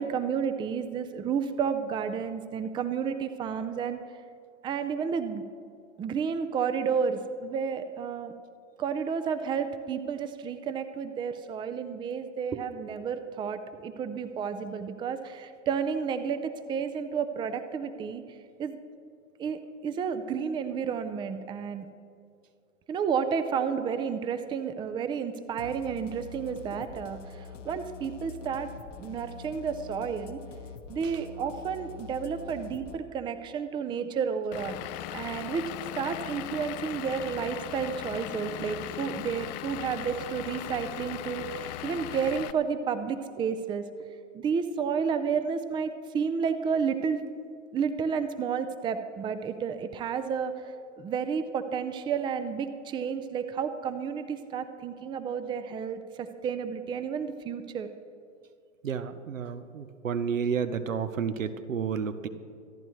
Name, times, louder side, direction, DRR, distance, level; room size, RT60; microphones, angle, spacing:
voice 1, 0.0-4.0 4.6-5.4 6.0-8.3 8.8-18.2 18.6-18.8 19.4-21.9 22.9-28.7 29.0-30.4 30.9-34.8 35.1-43.9 44.3-47.2 47.7-57.9, right 6 dB, 10° right, 10 dB, 0.5 m, -31 dB
sound 1, 25.6-33.0, left 6 dB, 70° left, 1.4 m, -45 dB
Vehicle / Engine, 34.5-42.5, left 14 dB, 35° left, 0.5 m, -38 dB
voice 2, 58.8-62.3, right 6 dB, 85° right, 11 dB, 0.9 m, -31 dB
25.5 x 10.5 x 3.2 m, 2.4 s
hypercardioid pair, 110°, 38 cm